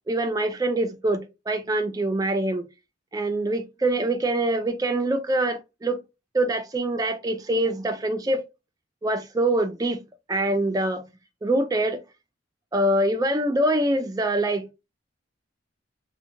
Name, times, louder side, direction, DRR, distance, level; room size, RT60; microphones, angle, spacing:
voice 1, 0.1-2.7 3.1-6.0 6.3-8.4 9.0-10.0 10.3-11.0 11.4-12.0 12.7-14.7, right 1 dB, 20° right, 0.3 m, -24 dB
2.7 x 2.1 x 2.5 m
head